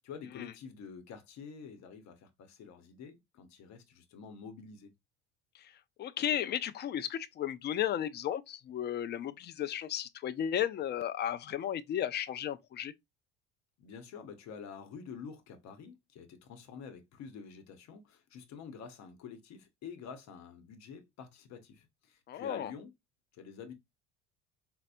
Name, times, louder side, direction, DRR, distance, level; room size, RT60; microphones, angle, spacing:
voice 1, 0.0-4.9 13.8-22.9 23.3-23.7, left 6 dB, 55° left, 0.9 m, -48 dB
voice 2, 6.0-12.9 22.3-22.7, left 10 dB, 30° left, 0.4 m, -34 dB
4.1 x 2.0 x 2.5 m
hypercardioid pair, 75°, 33 cm